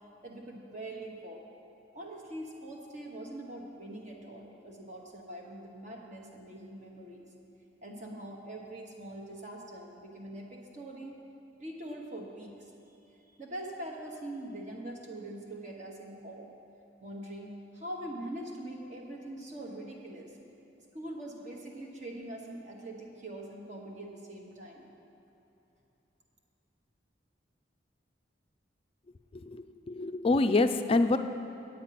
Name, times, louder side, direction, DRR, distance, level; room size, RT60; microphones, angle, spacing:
voice 1, 0.2-1.4 1.9-7.3 7.8-11.2 11.6-12.7 13.4-16.5 17.0-20.3 20.9-24.9, right 1 dB, 40° right, -1 dB, 1.1 m, -43 dB
voice 2, 29.4-31.2, left 2 dB, 30° left, 9 dB, 0.3 m, -26 dB
8.8 x 8.8 x 5.8 m, 2.9 s
head